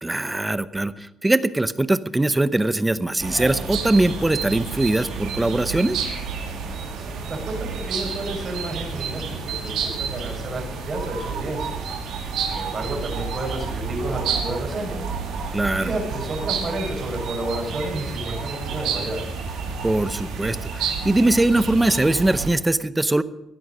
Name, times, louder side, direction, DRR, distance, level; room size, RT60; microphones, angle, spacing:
voice 1, 0.0-6.0 15.5-15.9 19.8-23.2, right 2 dB, 15° right, 14 dB, 0.7 m, -21 dB
sound 1, 3.2-22.5, right 5 dB, 85° right, 2.8 m, -30 dB
voice 2, 7.8-11.8 12.4-15.1 15.8-19.3, right 1 dB, 40° right, 0 dB, 6.1 m, -31 dB
16.0 x 11.0 x 5.5 m, 0.96 s
cardioid pair, 90°, 0 cm